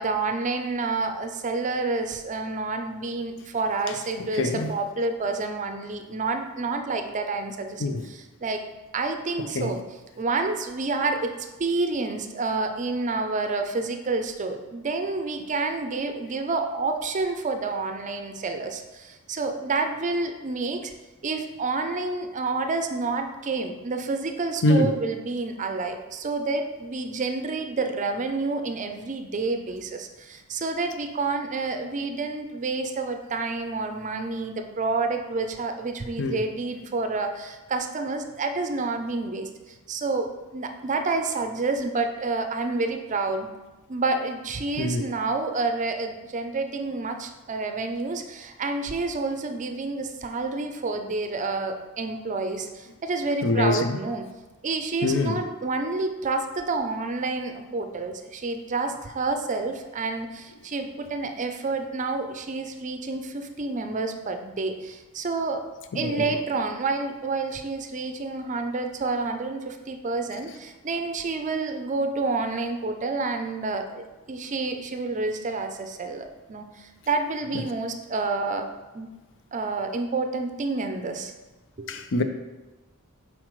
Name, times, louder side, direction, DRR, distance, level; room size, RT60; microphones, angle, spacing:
voice 1, 0.0-8.6 8.9-9.8 10.2-11.3 11.6-20.9 21.2-39.5 39.9-43.5 43.9-54.2 54.6-65.7 65.9-78.7 78.9-79.1 79.5-81.3 81.8-81.9, right 3 dB, 35° right, 0.5 m, -29 dB
voice 2, 3.9-4.7 7.8-8.0 9.4-9.8 24.6-24.9 36.2-36.4 44.8-45.0 53.4-54.0 55.0-55.4 65.9-66.3 81.9-82.2, left 2 dB, 60° left, 0.5 m, -25 dB
7.5 x 4.7 x 3.1 m
head